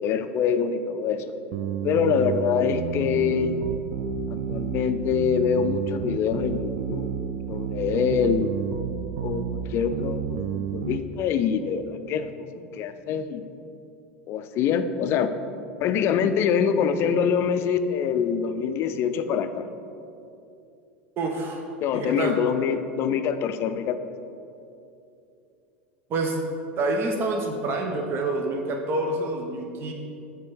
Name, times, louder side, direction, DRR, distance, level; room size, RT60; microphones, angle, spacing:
voice 1, 0.0-1.3 1.8-3.6 4.3-7.2 7.5-8.5 9.2-12.3 12.7-13.4 14.3-15.3 15.8-19.7 21.8-23.9, left 7 dB, 45° left, 10 dB, 0.4 m, -25 dB
sound 1, 1.5-11.0, right 8 dB, 60° right, 0.3 m, -30 dB
voice 2, 21.2-21.6 21.9-22.4 26.1-26.4 26.8-29.9, right 2 dB, 40° right, 2 dB, 0.8 m, -27 dB
7.5 x 3.5 x 5.6 m, 2.7 s
hypercardioid pair, 85°, 6 cm